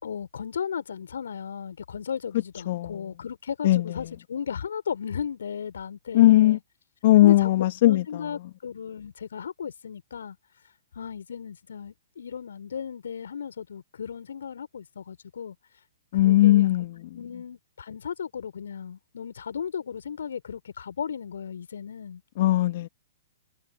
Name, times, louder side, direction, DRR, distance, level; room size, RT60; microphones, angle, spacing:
voice 1, 0.0-6.6 7.2-7.5 7.8-10.4 10.9-15.6 16.1-16.9 17.1-22.2, left 7 dB, 65° left, 4.6 m, -35 dB
voice 2, 6.1-6.6 7.0-8.0 16.1-16.9 22.4-22.9, left 15 dB, 45° left, 2.6 m, -18 dB
figure-of-eight pair, 115°, 0 cm